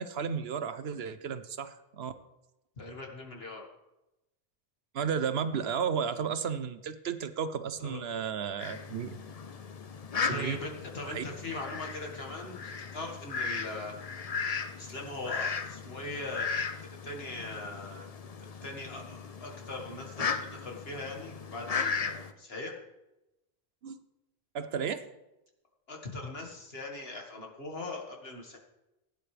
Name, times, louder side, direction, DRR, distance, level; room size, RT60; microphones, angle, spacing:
voice 1, 0.0-2.1 4.9-9.2 10.2-10.6 11.1-11.2 23.8-24.0 24.5-25.1, right 7 dB, 75° right, 12 dB, 1.0 m, -33 dB
voice 2, 2.8-3.7 7.8-8.3 10.3-14.0 14.8-16.5 17.0-18.1 18.6-22.7 25.9-28.6, left 2 dB, 75° left, 1 dB, 2.3 m, -40 dB
Fowl, 8.6-22.3, left 5 dB, 45° left, 0.6 m, -37 dB
16.5 x 9.5 x 3.4 m, 0.94 s
omnidirectional pair, 1.0 m